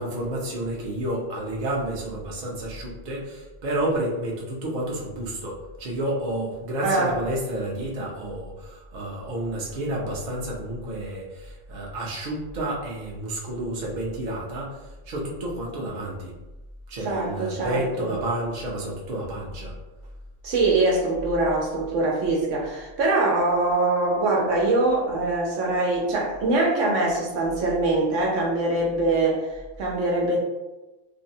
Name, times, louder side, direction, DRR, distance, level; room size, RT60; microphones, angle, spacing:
voice 1, 0.0-14.8 15.1-16.3 16.9-19.7, right 1 dB, 50° right, -3 dB, 0.6 m, -30 dB
voice 2, 6.8-7.2 17.0-18.1 20.4-30.4, right 2 dB, 80° right, -2 dB, 1.0 m, -23 dB
2.6 x 2.0 x 2.6 m, 1.1 s
omnidirectional pair, 1.3 m